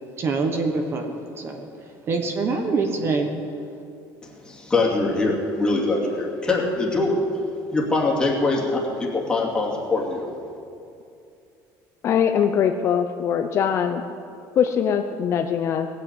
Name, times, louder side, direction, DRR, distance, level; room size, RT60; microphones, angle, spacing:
voice 1, 0.2-1.7 2.1-3.3, right 4 dB, 30° right, 5 dB, 1.3 m, -25 dB
voice 2, 4.2-7.2 7.7-10.3, left 3 dB, 10° left, -3 dB, 2.5 m, -23 dB
voice 3, 12.0-14.0 14.6-15.9, left 8 dB, 35° left, 6 dB, 0.6 m, -22 dB
18.5 x 8.5 x 8.3 m, 2.5 s
cardioid pair, 165°, 8 cm